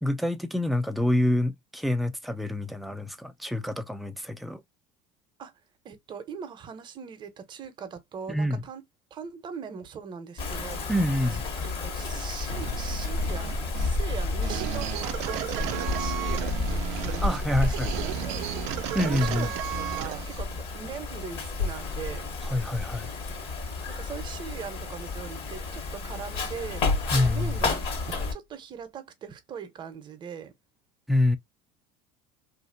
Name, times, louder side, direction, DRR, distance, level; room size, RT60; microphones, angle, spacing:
voice 1, 0.0-4.6 8.3-8.6 10.9-11.4 17.2-17.9 18.9-19.5 22.5-23.1 27.1-27.6 31.1-31.4, left 1 dB, ahead, 0.5 m, -26 dB
voice 2, 5.8-8.8 9.1-10.9 11.2-11.3 11.6-19.5 19.8-22.3 23.9-26.8 27.1-30.5, right 7 dB, 35° right, 0.8 m, -41 dB
Wind, 10.4-28.3, left 3 dB, 45° left, 1.3 m, -32 dB
sound 1, 12.5-20.4, right 13 dB, 65° right, 0.4 m, -34 dB
sound 2, 21.6-22.6 22.9-23.0 26.2-28.2, left 5 dB, 60° left, 0.5 m, -33 dB
2.7 x 2.5 x 2.5 m
supercardioid pair, 105°, 13 cm